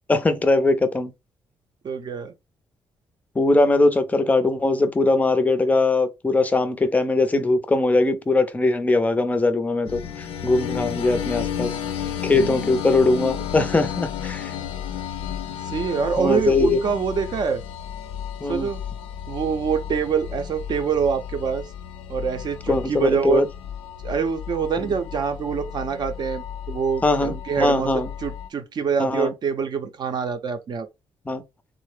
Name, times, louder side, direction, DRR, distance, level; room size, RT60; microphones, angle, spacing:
voice 1, 0.1-1.1 3.4-11.7 12.2-14.5 16.2-16.8 18.4-18.7 22.7-23.5 27.0-28.1 29.0-29.3 31.3-31.4, left 2 dB, 15° left, 0.5 m, -21 dB
voice 2, 1.8-2.3 12.3-12.7 15.6-17.6 18.5-18.8 19.3-21.7 22.1-23.5 24.0-27.9 28.2-30.9, right 6 dB, 50° right, 0.6 m, -25 dB
sound 1, 9.8-28.5, left 9 dB, 80° left, 0.5 m, -33 dB
3.6 x 2.0 x 3.1 m
cardioid pair, 145°, 10 cm